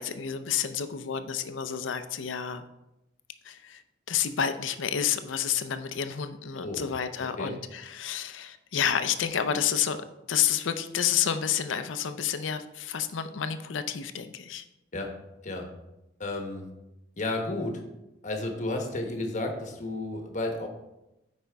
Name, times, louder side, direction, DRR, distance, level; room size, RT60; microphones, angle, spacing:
voice 1, 0.0-2.6 3.4-3.8 4.1-14.6, left 8 dB, 85° left, 0.5 m, -30 dB
voice 2, 16.2-16.7 17.2-17.8 18.2-20.7, left 2 dB, 40° left, 1.1 m, -32 dB
8.6 x 5.2 x 3.5 m
head